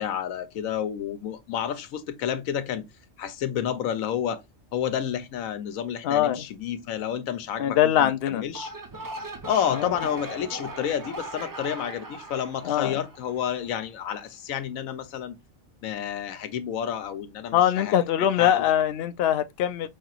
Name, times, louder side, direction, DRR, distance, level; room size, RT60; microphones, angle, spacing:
voice 1, 0.0-2.9 3.2-4.4 4.7-8.7 9.5-15.4 15.8-18.1 18.4-18.7, left 9 dB, 85° left, 1.1 m, -30 dB
voice 2, 6.0-6.4 7.6-8.4 9.7-9.9 12.6-13.0 17.5-19.9, left 11 dB, 60° left, 0.7 m, -22 dB
sound 1, 8.4-13.7, right 1 dB, 35° right, 0.3 m, -39 dB
5.3 x 2.9 x 2.4 m
omnidirectional pair, 1.4 m